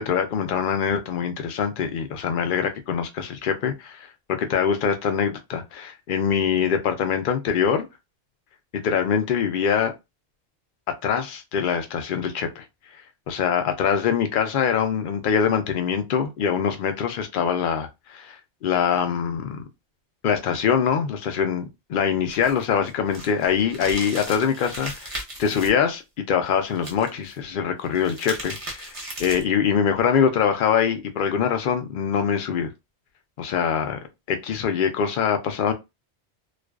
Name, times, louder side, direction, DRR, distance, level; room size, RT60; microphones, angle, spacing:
voice 1, 0.0-7.9 8.7-9.9 10.9-12.6 13.3-19.6 20.2-26.0 26.3-28.9 29.2-32.7 33.4-34.0 34.3-35.7, left 7 dB, 60° left, 0.6 m, -24 dB
sound 1, 22.3-25.7 26.8-27.3 27.8-29.6, right 1 dB, 35° right, 0.7 m, -36 dB
2.4 x 2.2 x 2.3 m
omnidirectional pair, 1.2 m